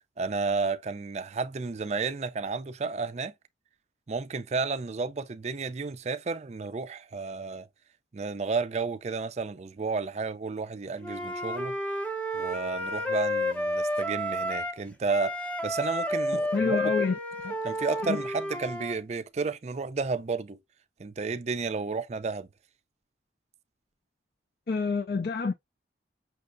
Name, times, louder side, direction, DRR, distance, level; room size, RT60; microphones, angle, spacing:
voice 1, 0.2-3.3 4.1-7.7 8.1-11.8 12.3-16.9 17.6-20.6 21.0-22.5, right 4 dB, 40° right, 0.4 m, -32 dB
Wind instrument woodwind instrument, 11.0-14.8 15.1-19.0, left 1 dB, 10° left, 0.6 m, -31 dB
voice 2, 16.5-17.2 17.4-17.5 18.1-18.2 24.7-25.5, left 4 dB, 55° left, 0.5 m, -27 dB
5.8 x 3.2 x 2.5 m
head